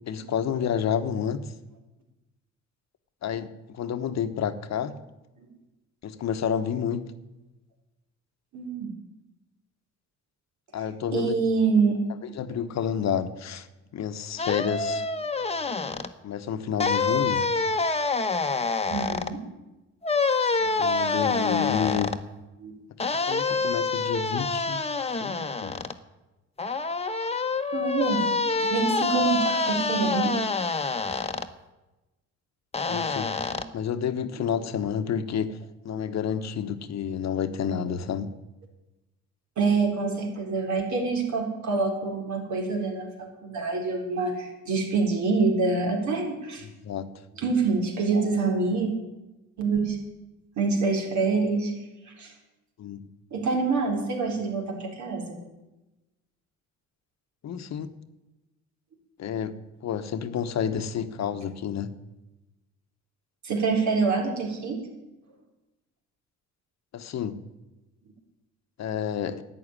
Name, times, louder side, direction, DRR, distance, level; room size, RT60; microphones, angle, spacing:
voice 1, 0.1-1.4 3.2-4.9 6.0-7.1 10.7-11.3 12.3-13.7 13.9-15.1 16.2-17.5 20.8-22.2 23.3-24.9 25.2-25.8 32.9-33.3 33.7-35.6 35.8-38.3 46.6-47.1 52.8-53.1 57.4-57.9 59.2-61.9 66.9-67.4 68.8-69.4, left 8 dB, 60° left, 1.1 m, -30 dB
voice 2, 8.5-8.9 11.1-12.0 12.3-12.4 18.9-19.4 22.6-22.8 27.7-28.2 28.6-30.3 33.5-33.6 34.4-34.5 39.6-46.6 47.4-48.9 49.6-50.0 50.6-51.7 52.2-52.3 53.3-55.4 63.4-64.8, right 4 dB, 70° right, 3.9 m, -26 dB
sound 1, 14.4-16.1 16.8-19.3 20.0-22.2 23.0-25.9 26.6-31.5 32.7-33.6, left 4 dB, 20° left, 1.0 m, -26 dB
11.5 x 8.5 x 9.9 m
cardioid pair, 90°, 30 cm